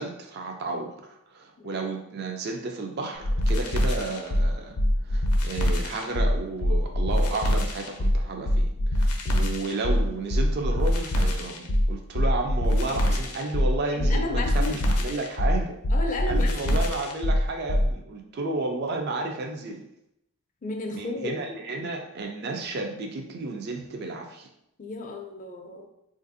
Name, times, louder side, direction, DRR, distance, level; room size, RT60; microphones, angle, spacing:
voice 1, 0.0-4.7 5.0-15.8 16.3-19.8 20.9-24.5, right 3 dB, 45° right, 2 dB, 0.4 m, -32 dB
sound 1, 3.2-17.9, equal, 90° left, 0.5 m, -24 dB
voice 2, 13.9-14.8 15.1-15.2 15.9-16.8 20.6-21.4 24.8-25.9, left 2 dB, 35° left, 3 dB, 0.4 m, -33 dB
4.0 x 2.5 x 2.6 m, 0.80 s
head